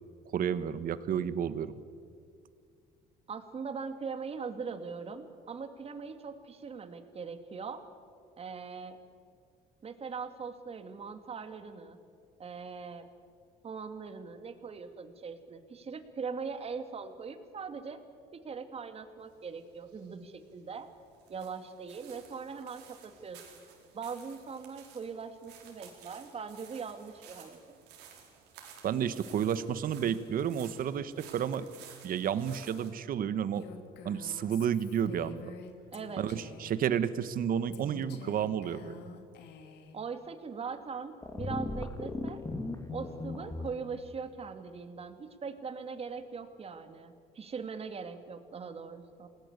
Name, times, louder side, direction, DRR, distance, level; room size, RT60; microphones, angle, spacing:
voice 1, 0.3-1.7 28.8-31.7 32.0-33.7 34.0-35.4 36.2-39.0, right 8 dB, 60° right, 14 dB, 1.4 m, -31 dB
voice 2, 3.3-7.8 8.4-9.0 9.8-12.0 12.4-13.1 13.6-18.0 18.3-20.9 21.3-23.4 23.9-27.8 35.9-36.3 39.9-42.4 42.9-49.3, right 5 dB, 35° right, 8 dB, 2.4 m, -41 dB
sound 1, 19.2-32.9, right 8 dB, 90° right, 4.7 m, -55 dB
Female speech woman speaking, 33.5-36.8 37.7-40.0, left 5 dB, 75° left, 2.6 m, -49 dB
sound 2, 41.2-43.7, left 2 dB, 20° left, 2.7 m, -37 dB
27.5 x 20.0 x 8.2 m, 2.2 s
cardioid pair, 110°, 17 cm